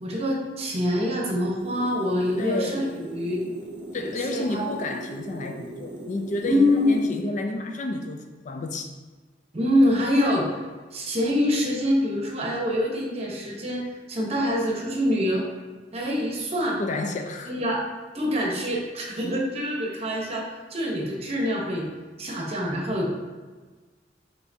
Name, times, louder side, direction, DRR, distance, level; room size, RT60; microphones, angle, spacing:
voice 1, 0.0-3.4 4.0-4.6 6.4-7.0 9.5-10.5 10.9-15.4 15.9-16.8 17.5-17.8 18.1-21.8 22.2-23.1, left 1 dB, 35° right, -2 dB, 0.9 m, -25 dB
sound 1, 1.6-7.2, right 1 dB, 90° right, 0.6 m, -39 dB
voice 2, 2.4-2.9 3.9-8.9 16.8-17.5, left 2 dB, 45° left, 5 dB, 0.4 m, -31 dB
5.6 x 3.4 x 2.7 m, 1.4 s
head